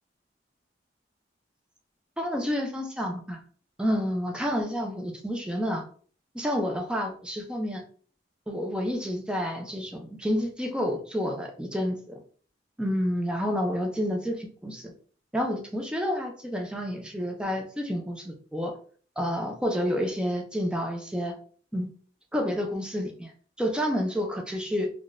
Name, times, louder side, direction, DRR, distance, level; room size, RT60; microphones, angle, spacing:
voice 1, 2.2-3.4 3.8-5.8 6.3-7.8 8.5-12.2 12.8-14.9 15.3-18.8 19.2-21.4 21.7-21.9 22.3-23.3 23.6-24.9, equal, 5° right, 2 dB, 0.4 m, -29 dB
3.6 x 2.3 x 2.5 m, 0.44 s
head